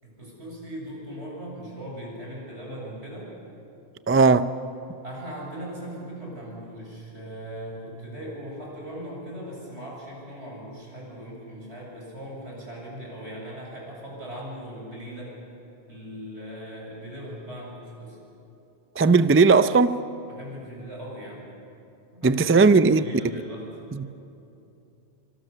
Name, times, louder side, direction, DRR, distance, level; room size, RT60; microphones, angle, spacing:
voice 1, 0.0-3.3 4.9-15.4 15.9-18.2 20.3-21.5 22.1-23.8, equal, 80° right, 7.7 m, -39 dB
voice 2, 4.1-4.5 19.0-20.0 22.2-23.0 23.9-24.2, right 4 dB, 20° right, 0.3 m, -18 dB
27.5 x 25.0 x 6.8 m
omnidirectional pair, 1.1 m